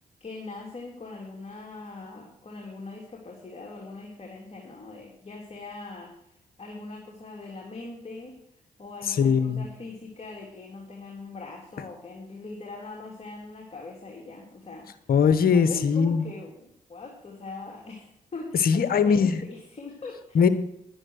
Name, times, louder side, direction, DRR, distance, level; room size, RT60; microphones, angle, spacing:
voice 1, 0.2-6.1 6.6-8.4 8.8-14.9 15.5-20.4, left 3 dB, 40° left, -1 dB, 3.4 m, -41 dB
voice 2, 9.1-9.6 15.1-16.2 18.6-19.4 20.3-20.5, left 6 dB, 65° left, 12 dB, 1.3 m, -21 dB
11.0 x 9.7 x 6.5 m, 0.74 s
supercardioid pair, 50°, 16 cm